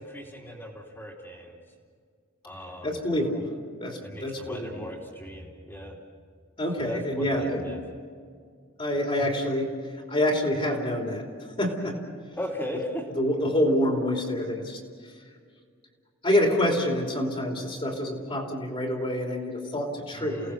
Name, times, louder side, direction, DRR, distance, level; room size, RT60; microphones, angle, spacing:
voice 1, 0.0-1.6 2.4-2.9 4.0-6.0 6.9-7.8 9.2-9.3 12.3-13.0 20.1-20.5, equal, 10° left, -6 dB, 2.9 m, -38 dB
voice 2, 2.8-3.5 3.8-4.9 6.6-7.6 8.8-9.7 10.1-11.2 11.6-12.0 13.2-14.8 16.2-20.5, left 1 dB, 25° left, 1 dB, 3.1 m, -27 dB
29.5 x 18.0 x 6.5 m, 2.1 s
head